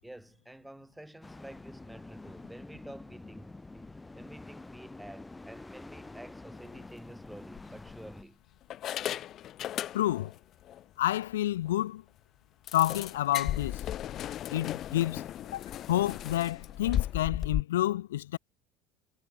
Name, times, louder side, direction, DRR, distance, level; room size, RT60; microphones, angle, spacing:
voice 1, 0.0-8.4, right 1 dB, 5° right, 7.5 m, -49 dB
sound 1, 1.2-8.2, left 2 dB, 15° left, 4.3 m, -47 dB
sound 2, 6.6-6.9 7.5-8.2 8.7-10.4 10.7-10.8 11.2-11.3 11.7-11.8 12.7-17.6, left 12 dB, 50° left, 1.2 m, -36 dB
voice 2, 9.9-10.3 11.0-12.0 12.7-13.8 14.5-15.2 15.5-15.6 15.9-18.4, left 14 dB, 85° left, 0.4 m, -29 dB
hypercardioid pair, 75°, 0 cm